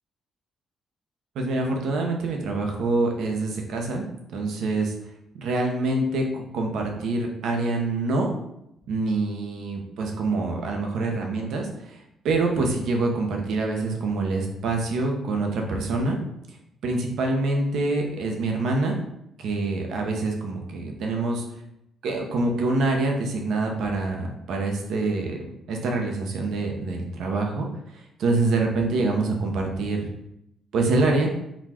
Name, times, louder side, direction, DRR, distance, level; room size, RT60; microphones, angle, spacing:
voice 1, 1.3-4.1 4.3-4.9 5.3-8.3 8.9-16.2 16.8-19.0 19.4-21.4 22.0-25.4 25.7-27.7 27.9-30.1 30.7-31.3, right 2 dB, 75° right, 1 dB, 0.9 m, -25 dB
4.2 x 2.4 x 4.3 m, 0.81 s
cardioid pair, 90°, 0 cm